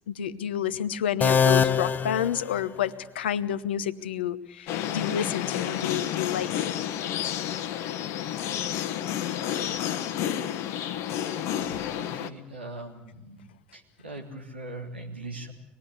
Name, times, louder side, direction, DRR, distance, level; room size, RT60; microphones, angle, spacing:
voice 1, 0.1-6.7, left 10 dB, 75° left, 15 dB, 0.9 m, -29 dB
sound 1, 1.2-3.1, left 6 dB, 30° left, 0.9 m, -24 dB
sound 2, 4.7-12.3, left 10 dB, 55° left, 1.2 m, -30 dB
voice 2, 11.9-13.4 13.7-15.5, right 2 dB, 85° right, 0 dB, 3.1 m, -40 dB
24.5 x 20.0 x 8.2 m, 0.88 s
figure-of-eight pair, 65°, 6 cm